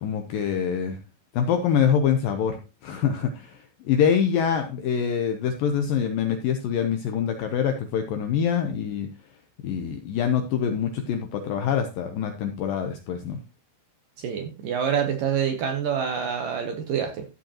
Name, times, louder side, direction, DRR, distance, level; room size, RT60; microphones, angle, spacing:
voice 1, 0.0-1.0 1.3-9.1 9.6-13.4, left 8 dB, 75° left, 5 dB, 2.1 m, -25 dB
voice 2, 14.2-17.2, right 7 dB, 70° right, 5 dB, 2.1 m, -26 dB
14.0 x 7.7 x 2.9 m, 0.29 s
omnidirectional pair, 5.0 m